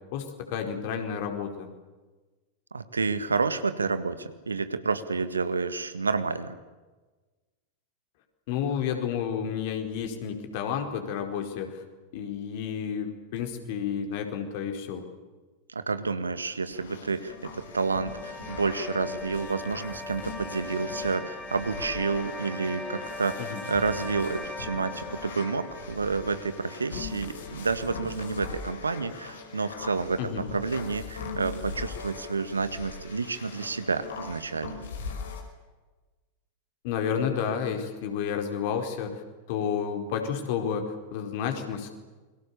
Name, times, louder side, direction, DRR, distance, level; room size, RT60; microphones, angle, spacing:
voice 1, 0.1-1.7 8.5-11.8 12.1-15.1 23.4-23.6 30.2-30.4 36.8-39.2 39.5-41.9, left 7 dB, 50° left, 5 dB, 4.7 m, -31 dB
voice 2, 2.7-6.6 15.7-34.8, right 4 dB, 75° right, 12 dB, 1.8 m, -30 dB
sound 1, 16.7-35.4, left 4 dB, 65° left, 5.5 m, -41 dB
sound 2, 17.2-28.3, left 3 dB, 10° left, 3.8 m, -40 dB
29.5 x 23.5 x 7.0 m, 1.3 s
figure-of-eight pair, 90°, 0 cm